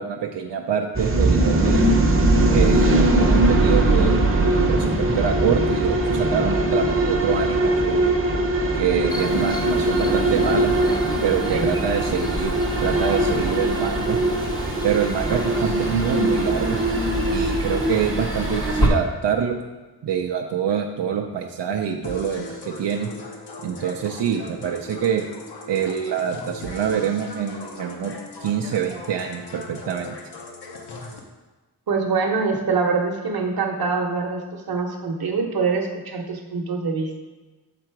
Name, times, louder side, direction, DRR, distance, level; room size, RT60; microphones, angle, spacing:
voice 1, 0.0-1.9 2.5-4.2 4.5-8.0 8.7-10.7 11.2-14.2 14.8-16.8 17.3-19.6 20.0-23.1 23.6-25.3 25.7-30.2, right 8 dB, 90° right, 2 dB, 0.6 m, -25 dB
sound 1, 0.9-18.9, right 1 dB, 30° right, 0.7 m, -21 dB
sound 2, 9.1-18.9, equal, 10° left, 0.5 m, -30 dB
sound 3, 22.0-31.2, left 3 dB, 70° left, 0.9 m, -39 dB
voice 2, 31.9-37.1, right 4 dB, 60° right, 2 dB, 0.9 m, -24 dB
6.7 x 3.8 x 4.6 m, 1.2 s
wide cardioid pair, 130°, 41 cm